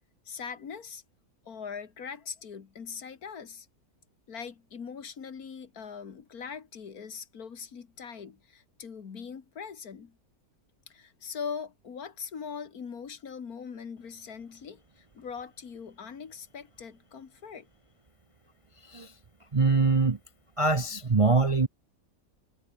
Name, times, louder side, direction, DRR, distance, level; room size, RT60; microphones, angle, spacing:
voice 1, 0.3-1.0 1.5-3.7 4.3-10.2 10.9-17.7, left 6 dB, 75° left, 2.2 m, -41 dB
voice 2, 19.5-20.2 20.6-21.7, right 4 dB, 30° right, 0.6 m, -23 dB
omnidirectional pair, 1.6 m